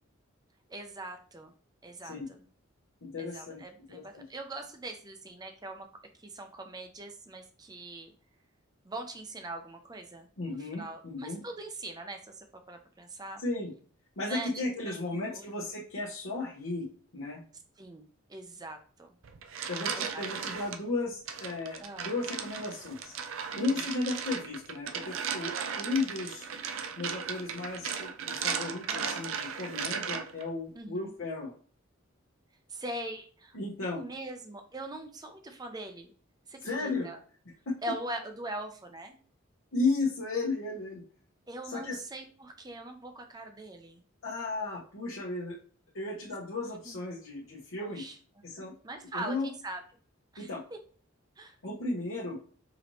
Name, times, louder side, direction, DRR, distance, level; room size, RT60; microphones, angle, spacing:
voice 1, 0.7-1.5 1.8-2.4 3.2-5.9 6.2-8.1 8.8-13.4 14.2-15.0 15.3-15.6 17.8-19.1 19.9-20.2 21.8-22.1 23.5-23.8 28.9-29.2 30.7-31.2 32.7-33.6 33.9-36.1 36.5-37.2 37.8-39.2 41.5-44.0 46.6-47.0 47.8-48.2 48.8-49.8 50.3-50.8 51.4-51.6, right 2 dB, 20° right, 5 dB, 0.5 m, -42 dB
voice 2, 3.0-3.6 3.9-4.2 10.4-11.4 13.4-13.7 14.2-16.9 17.1-17.4 19.7-23.1 23.6-26.5 27.0-31.5 33.5-34.0 36.6-37.1 37.7-37.8 39.7-41.0 41.7-42.0 44.2-45.6 45.9-48.0 48.4-48.7 49.1-49.5 50.4-50.6 51.6-52.4, left 3 dB, 80° left, -6 dB, 0.9 m, -34 dB
sound 1, 19.2-20.8 21.3-30.5, right 7 dB, 75° right, 0.4 m, -36 dB
4.9 x 2.7 x 3.0 m, 0.43 s
head